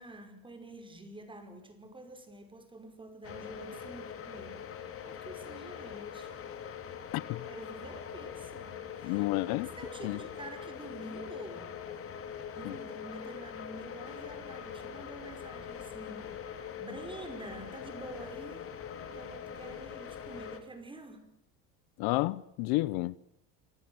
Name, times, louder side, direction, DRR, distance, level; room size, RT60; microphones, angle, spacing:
voice 1, 0.0-6.4 7.4-11.7 12.6-21.3, right 2 dB, 15° right, 5.3 m, -48 dB
sound 1, 3.2-20.6, left 8 dB, 35° left, 3.3 m, -43 dB
voice 2, 7.1-7.4 9.0-9.7 10.0-10.2 12.6-12.7 22.0-23.2, left 21 dB, 75° left, 1.0 m, -31 dB
28.5 x 25.5 x 7.9 m
cardioid pair, 145°, 38 cm